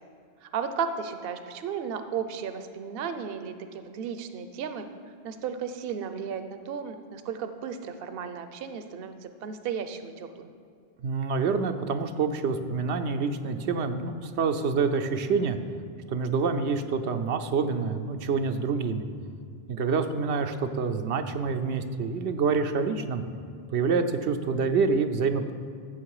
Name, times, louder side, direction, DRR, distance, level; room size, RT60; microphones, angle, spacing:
voice 1, 0.4-4.9 5.2-10.5, right 6 dB, 65° right, 9 dB, 0.8 m, -34 dB
voice 2, 11.0-15.6 16.1-19.0 19.7-23.2 23.7-25.5, right 5 dB, 90° right, 7 dB, 1.0 m, -27 dB
14.5 x 7.2 x 4.8 m, 2.3 s
omnidirectional pair, 1.1 m